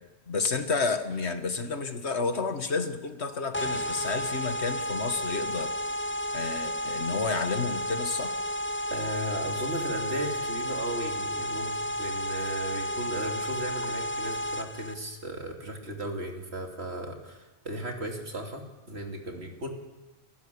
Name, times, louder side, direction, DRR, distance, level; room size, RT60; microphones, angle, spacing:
voice 1, 0.3-5.7 6.3-8.3, left 4 dB, 80° left, 8 dB, 1.8 m, -30 dB
sound 1, 3.5-14.9, equal, 15° left, 0.6 m, -32 dB
voice 2, 8.9-19.7, right 1 dB, 75° right, 2 dB, 3.2 m, -36 dB
28.0 x 15.5 x 6.9 m, 1.1 s
omnidirectional pair, 1.1 m